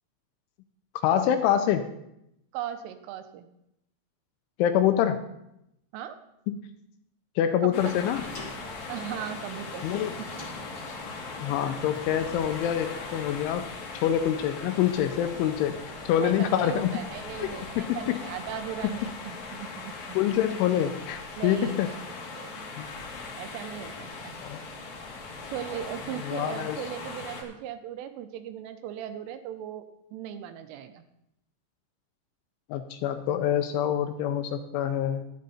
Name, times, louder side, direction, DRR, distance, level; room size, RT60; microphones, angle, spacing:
voice 1, 1.0-1.8 4.6-5.2 6.5-6.6 7.4-8.2 9.8-10.1 11.4-13.7 14.0-15.7 16.1-16.9 17.8-18.2 20.1-21.9 22.8-22.9 24.4-24.6 26.2-26.8 32.7-35.2, left 10 dB, 85° left, 8 dB, 2.9 m, -26 dB
voice 2, 2.5-3.5 5.9-6.2 7.6-7.9 8.9-10.3 16.2-20.2 21.4-22.7 23.3-24.4 25.5-31.0, right 10 dB, 80° right, 9 dB, 3.2 m, -38 dB
sound 1, 7.4-12.3, left 1 dB, 25° left, 2.4 m, -47 dB
sound 2, 7.7-27.4, left 4 dB, 50° left, 2.4 m, -39 dB
12.0 x 11.5 x 4.2 m, 0.82 s
omnidirectional pair, 5.9 m